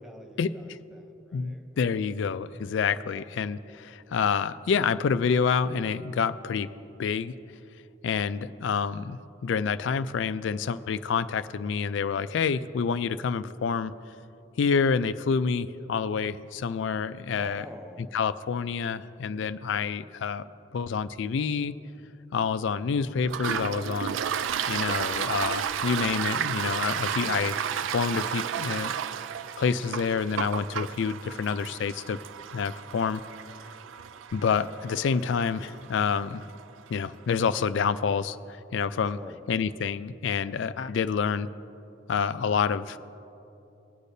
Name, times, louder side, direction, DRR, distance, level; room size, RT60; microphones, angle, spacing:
voice 1, 0.0-2.2 3.0-3.3 17.3-18.1 27.2-27.5 39.1-39.4, equal, ahead, 3 dB, 0.6 m, -48 dB
voice 2, 1.3-6.7 7.0-7.4 8.0-13.9 14.6-17.7 18.1-20.4 20.7-21.8 22.3-24.2 24.7-27.5 27.9-28.9 29.6-32.2 32.5-33.2 34.3-36.4 36.9-39.2 39.5-41.5 42.1-43.0, left 6 dB, 70° left, 14 dB, 0.3 m, -28 dB
Toilet flush, 23.2-36.6, right 8 dB, 75° right, 0.3 m, -32 dB
20.5 x 8.3 x 2.7 m, 2.9 s
head